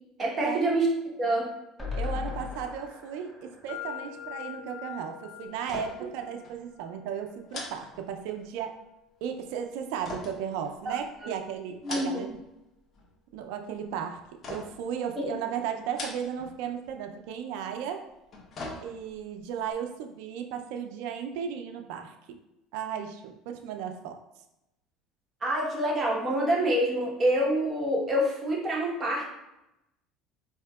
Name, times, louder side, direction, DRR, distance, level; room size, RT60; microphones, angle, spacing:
voice 1, 0.2-0.9 1.2-1.5 10.8-10.9 11.2-11.3 11.8-12.2 15.2-15.3 25.4-29.3, right 1 dB, 30° right, -2 dB, 1.0 m, -26 dB
sound 1, 1.8-5.0 5.4-5.5 5.7-5.8, left 5 dB, 5° left, 0.9 m, -38 dB
voice 2, 1.9-8.8 9.2-12.3 13.3-14.2 14.5-18.0 18.8-22.4 22.7-24.2, right 8 dB, 75° right, 5 dB, 0.4 m, -35 dB
sound 2, 3.7-11.5, left 12 dB, 70° left, 1.3 m, -46 dB
sound 3, 5.6-6.2 6.4-6.6 7.5-8.6 10.0-11.2 11.7-12.5 12.8-13.3 14.4-14.9 15.8-16.6 16.9-17.0 18.1-19.3 19.7-19.8, left 2 dB, 45° left, 0.8 m, -41 dB
4.4 x 2.7 x 2.3 m, 0.89 s
supercardioid pair, 105°, 0 cm